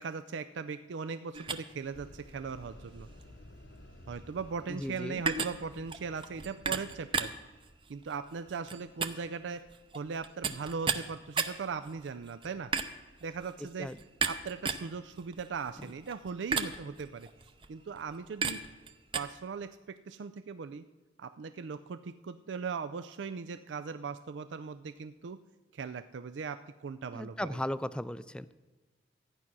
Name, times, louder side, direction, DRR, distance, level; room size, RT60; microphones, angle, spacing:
voice 1, 0.0-3.1 4.1-7.3 7.9-9.7 9.9-12.7 13.2-13.9 14.2-17.3 17.7-18.6 19.1-20.8 21.2-25.4 25.7-27.6, right 5 dB, 85° right, 11 dB, 0.4 m, -39 dB
sound 1, 1.3-19.2, right 5 dB, 30° right, 0.6 m, -37 dB
sound 2, 1.9-6.9, left 1 dB, 75° left, 1.0 m, -53 dB
voice 2, 4.7-5.2 13.8-14.0 27.1-28.5, left 1 dB, 5° left, 15 dB, 0.3 m, -36 dB
14.0 x 9.7 x 6.0 m, 1.2 s
head